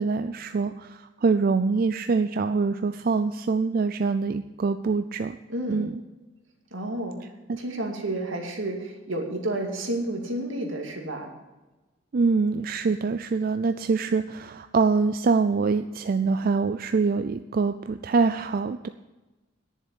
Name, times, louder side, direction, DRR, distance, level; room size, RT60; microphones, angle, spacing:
voice 1, 0.0-5.4 5.7-5.9 7.5-7.6 12.1-18.9, right 4 dB, 45° right, 9 dB, 0.4 m, -24 dB
voice 2, 5.5-5.9 6.7-7.2 7.6-11.3, right 1 dB, 80° right, 1 dB, 2.4 m, -30 dB
10.5 x 7.1 x 8.4 m, 1.1 s
head